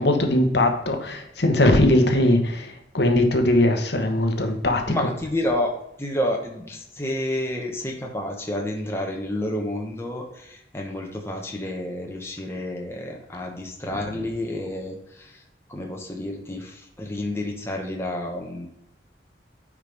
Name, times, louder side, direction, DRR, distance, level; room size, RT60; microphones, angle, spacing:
voice 1, 0.0-4.9, left 1 dB, 70° left, 5 dB, 1.2 m, -20 dB
voice 2, 4.9-5.7 6.0-15.4 15.7-18.7, left 1 dB, 15° left, 0 dB, 1.2 m, -30 dB
9.3 x 4.9 x 3.5 m, 0.81 s
head